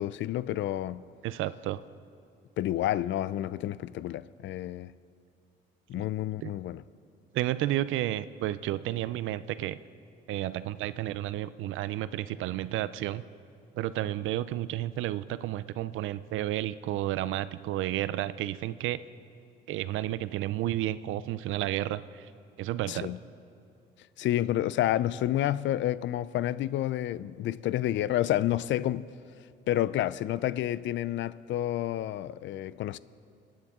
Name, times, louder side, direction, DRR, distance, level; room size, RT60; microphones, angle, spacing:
voice 1, 0.0-1.0 2.6-4.9 5.9-6.8 22.9-23.2 24.2-29.1 29.7-33.0, left 13 dB, 70° left, 0.4 m, -29 dB
voice 2, 1.2-1.8 5.9-6.0 6.4-6.5 7.3-9.8 10.3-13.2 13.7-19.0 19.7-22.3 22.6-23.1, right 14 dB, 85° right, 0.5 m, -31 dB
27.0 x 9.4 x 3.6 m
cardioid pair, 90°, 20 cm